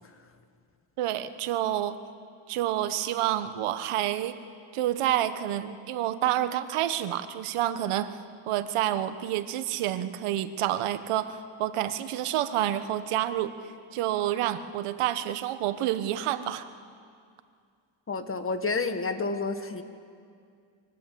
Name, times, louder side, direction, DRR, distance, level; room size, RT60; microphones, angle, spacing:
voice 1, 1.0-2.0 2.5-4.4 4.7-8.2 8.5-13.5 13.9-16.7, right 12 dB, 85° right, 11 dB, 1.4 m, -28 dB
voice 2, 18.1-19.8, left 3 dB, 25° left, 8 dB, 1.7 m, -29 dB
25.5 x 22.5 x 8.7 m, 2.3 s
cardioid pair, 135°, 49 cm